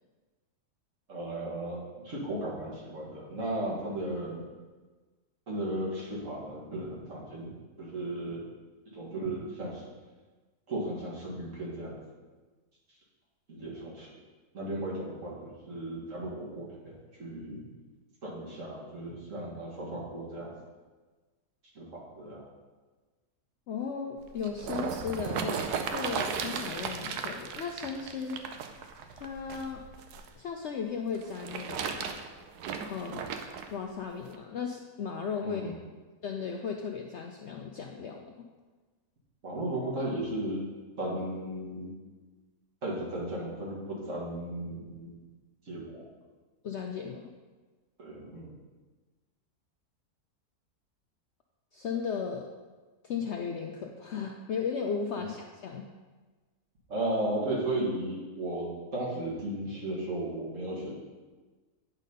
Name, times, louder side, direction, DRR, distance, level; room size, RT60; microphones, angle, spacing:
voice 1, 1.1-4.4 5.5-8.5 8.9-9.9 10.7-12.0 13.5-14.2 14.5-17.6 18.2-20.5 21.7-22.5 35.4-35.8 39.4-40.6 41.0-41.9 42.8-45.2 45.7-46.1 48.0-48.6 56.9-60.9, right 1 dB, 55° right, -5 dB, 2.1 m, -35 dB
voice 2, 23.7-28.4 29.2-29.8 30.4-32.2 32.9-33.3 33.7-35.8 36.2-38.5 46.6-47.3 51.7-52.5 53.0-55.9, left 6 dB, 65° left, 2 dB, 0.7 m, -36 dB
sound 1, 24.2-30.3 31.2-33.7 34.3-34.4, right 6 dB, 85° right, 1.2 m, -35 dB
9.1 x 4.1 x 5.3 m, 1.3 s
omnidirectional pair, 1.6 m